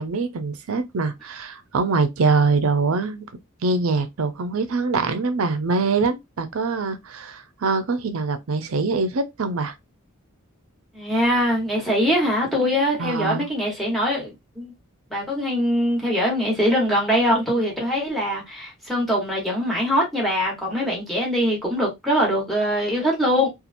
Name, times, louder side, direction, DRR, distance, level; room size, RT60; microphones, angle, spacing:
voice 1, 0.0-3.2 3.6-9.7 13.0-13.5, right 4 dB, 70° right, 0.5 m, -23 dB
voice 2, 10.9-14.7 15.1-23.5, equal, ahead, 1.2 m, -22 dB
2.9 x 2.4 x 2.5 m
head